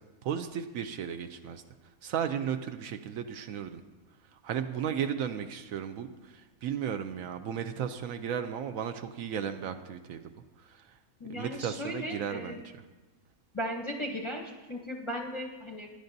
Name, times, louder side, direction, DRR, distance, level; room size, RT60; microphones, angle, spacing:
voice 1, 0.2-1.6 2.0-3.8 4.3-10.2 10.6-10.8 11.3-12.6, right 8 dB, 70° right, 8 dB, 0.9 m, -35 dB
voice 2, 11.2-12.6 13.5-15.9, equal, 30° left, 1 dB, 0.6 m, -36 dB
16.5 x 10.5 x 2.7 m, 1.2 s
omnidirectional pair, 1.6 m